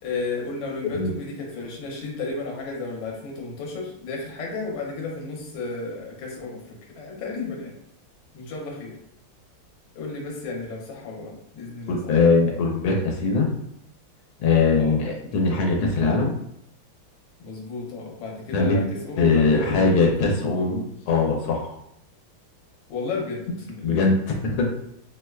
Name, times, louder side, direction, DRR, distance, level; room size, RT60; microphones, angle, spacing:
voice 1, 0.0-7.7 8.3-9.0 9.9-12.1 14.7-15.0 17.4-19.9 22.9-24.0, left 3 dB, 70° left, -2 dB, 1.4 m, -33 dB
voice 2, 11.9-13.5 14.4-16.3 18.5-18.8 19.2-21.8 23.8-24.7, left 4 dB, 85° left, 0 dB, 1.4 m, -21 dB
4.6 x 2.1 x 2.3 m, 0.74 s
omnidirectional pair, 2.2 m